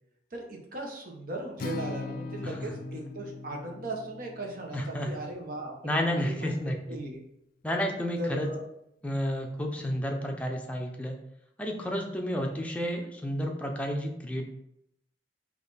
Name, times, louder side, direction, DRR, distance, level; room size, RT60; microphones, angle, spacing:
voice 1, 0.3-6.5 6.9-7.2 8.2-8.6, right 1 dB, 55° right, 1 dB, 0.9 m, -38 dB
Acoustic guitar, 1.6-5.8, left 3 dB, 55° left, 0.4 m, -40 dB
voice 2, 2.4-3.0 4.7-5.2 5.8-7.0 7.6-8.5 9.0-11.2 11.6-14.5, equal, 10° left, 1 dB, 0.6 m, -31 dB
4.0 x 3.1 x 4.0 m, 0.77 s
head